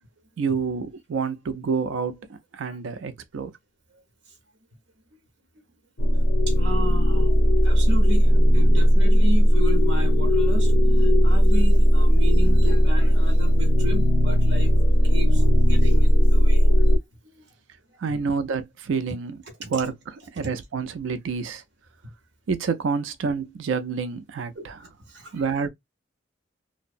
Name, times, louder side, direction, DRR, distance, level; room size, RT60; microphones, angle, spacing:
voice 1, 0.4-2.3 2.5-3.5 18.0-19.4 19.7-21.6 22.5-24.8 25.3-25.7, right 5 dB, 80° right, 0.4 m, -28 dB
sound 1, 6.0-17.0, equal, 65° left, 0.6 m, -17 dB
voice 2, 6.5-14.7 15.0-16.8 17.4-17.5 19.6-19.7 24.5-25.4, right 1 dB, 65° right, 1.0 m, -35 dB
2.7 x 2.0 x 2.5 m
head